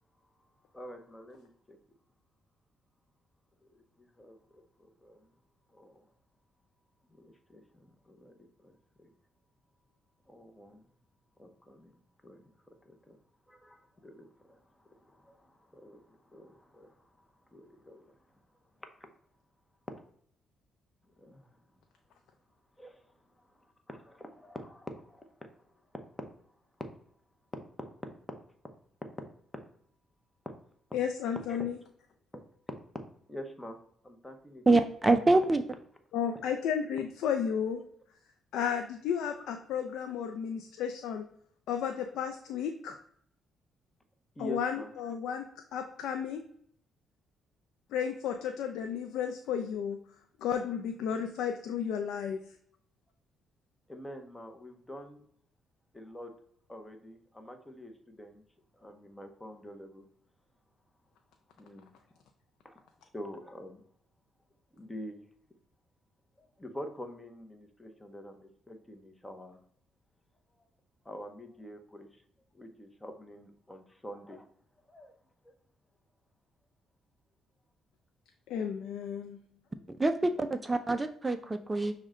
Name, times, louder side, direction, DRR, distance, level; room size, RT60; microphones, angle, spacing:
voice 1, 0.7-1.8 3.6-5.3 5.7-6.1 7.1-9.1 10.3-10.9 11.4-12.5 12.8-13.2 13.5-18.4 18.8-18.9 21.2-21.5 22.8-26.3 26.8-26.9 27.8-27.9 31.5-31.6 32.3-32.4 33.3-33.8 34.0-34.8 44.4-44.9 53.9-55.2 55.9-56.3 56.7-58.4 58.7-60.0 61.6-61.9 62.6-62.8 63.1-63.8 64.7-65.3 66.4-69.6 70.6-70.7 71.0-72.2 72.5-74.5 74.8-75.1 75.4-75.5, equal, 15° left, 5 dB, 0.7 m, -47 dB
voice 2, 30.9-31.7 36.1-37.8 38.5-41.3 41.7-43.0 44.4-45.5 45.7-46.4 47.9-50.0 50.4-52.4 78.5-79.4, left 8 dB, 85° left, 5 dB, 0.3 m, -33 dB
voice 3, 34.7-35.6 80.0-81.9, right 2 dB, 20° right, 9 dB, 0.3 m, -25 dB
6.1 x 2.1 x 3.6 m, 0.64 s
cardioid pair, 90°, 0 cm